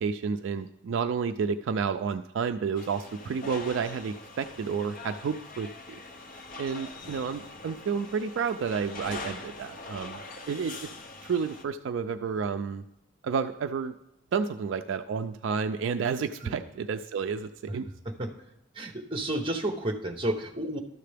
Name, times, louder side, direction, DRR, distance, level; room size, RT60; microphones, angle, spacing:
voice 1, 0.0-6.0 6.6-10.2 10.5-10.7 11.2-12.8 13.2-13.9 14.3-17.9, right 6 dB, 65° right, 8 dB, 0.3 m, -30 dB
sound 1, 2.8-11.6, left 3 dB, 40° left, 0.6 m, -43 dB
voice 2, 18.7-20.8, right 1 dB, 25° right, 3 dB, 0.8 m, -31 dB
12.5 x 6.6 x 3.4 m, 0.86 s
head